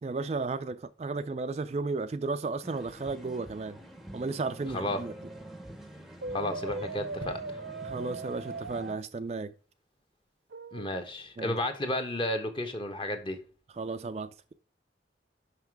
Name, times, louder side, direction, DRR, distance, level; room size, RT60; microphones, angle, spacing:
voice 1, 0.0-3.8 4.1-5.1 7.8-9.5 11.4-11.6 13.8-14.5, right 3 dB, 35° right, 0.3 m, -34 dB
sound 1, 2.6-8.9, right 1 dB, ahead, 0.7 m, -46 dB
Brass instrument, 6.2-9.0 10.5-11.1, right 3 dB, 70° right, 0.6 m, -39 dB
voice 2, 6.3-7.6 10.7-13.4, left 1 dB, 25° left, 1.1 m, -32 dB
5.8 x 5.8 x 4.6 m
head